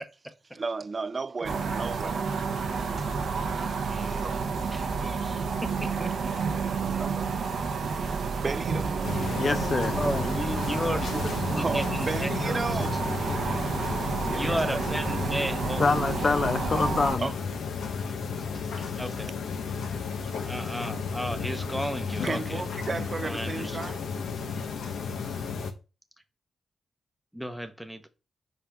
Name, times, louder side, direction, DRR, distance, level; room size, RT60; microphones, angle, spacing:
voice 1, 0.5-2.3 2.9-3.1 4.0-4.4 6.6-7.3 8.3-9.4 11.1-11.2 11.5-13.1 14.3-14.8 17.2-17.4 18.4-19.0 20.2-20.5 22.2-24.1, right 4 dB, 35° right, 0.3 m, -34 dB
sound 1, 1.4-17.2, right 5 dB, 75° right, 0.9 m, -30 dB
voice 2, 3.8-4.4 4.7-6.3 9.8-11.1 11.5-12.7 14.3-15.9 19.0-19.3 20.5-22.6 23.2-23.9 27.3-28.0, equal, ahead, 0.8 m, -34 dB
sound 2, 9.0-25.7, left 5 dB, 85° left, 0.9 m, -33 dB
voice 3, 9.4-9.9 15.8-17.3, left 4 dB, 45° left, 0.6 m, -25 dB
5.1 x 3.7 x 5.7 m
cardioid pair, 100°, 0 cm